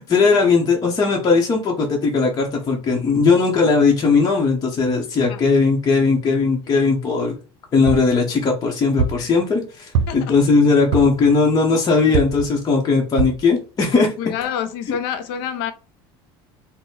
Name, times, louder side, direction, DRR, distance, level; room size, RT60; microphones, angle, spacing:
voice 1, 0.0-7.3 7.7-14.1, left 4 dB, 30° left, 0.9 m, -18 dB
sound 1, 7.9-8.2 9.0-9.3 9.9-10.4 10.9-11.3 12.1-12.5 13.2-13.5 14.0-14.1 14.4-14.5, right 5 dB, 80° right, 0.6 m, -23 dB
voice 2, 14.2-15.7, left 8 dB, 80° left, 0.6 m, -27 dB
4.0 x 2.2 x 3.8 m
supercardioid pair, 105°, 12 cm